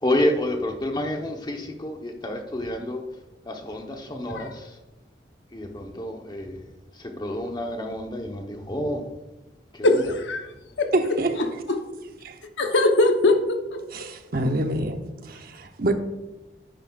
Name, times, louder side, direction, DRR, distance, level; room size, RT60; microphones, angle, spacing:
voice 1, 0.0-3.0 3.4-4.8 5.5-9.1 9.7-10.0, left 1 dB, 25° left, 1.0 m, -29 dB
voice 2, 9.8-10.4 10.8-10.9 11.7-11.8 12.6-14.1, left 2 dB, 90° left, 1.0 m, -21 dB
voice 3, 10.9-11.3 12.2-12.3 13.9-15.0 15.2-15.9, right 1 dB, 55° right, 0.9 m, -26 dB
10.5 x 9.3 x 2.4 m
head